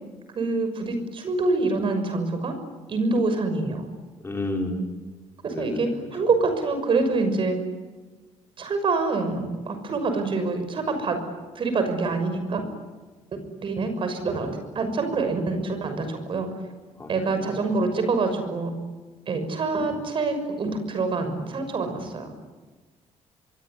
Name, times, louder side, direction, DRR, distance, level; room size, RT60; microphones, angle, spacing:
voice 1, 0.4-2.5 2.9-3.9 5.4-7.6 8.6-11.2 11.5-12.6 13.6-16.5 17.1-18.7 19.3-22.3, right 3 dB, 45° right, 8 dB, 6.3 m, -26 dB
voice 2, 4.2-4.8 5.5-6.0 17.0-17.7, left 1 dB, 20° left, 2 dB, 4.9 m, -32 dB
26.0 x 24.0 x 9.6 m, 1.3 s
cardioid pair, 130°, 12 cm